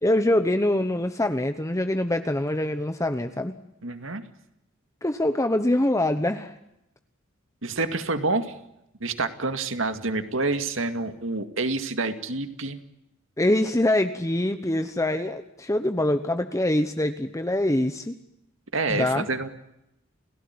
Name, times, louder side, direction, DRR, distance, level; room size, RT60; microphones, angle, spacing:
voice 1, 0.0-3.5 5.0-6.5 13.4-18.2 18.9-19.3, left 1 dB, 15° left, 8 dB, 1.0 m, -24 dB
voice 2, 3.8-4.2 7.6-8.6 9.0-12.8 18.7-19.5, right 3 dB, 75° right, 8 dB, 2.2 m, -28 dB
30.0 x 17.0 x 9.6 m, 0.86 s
head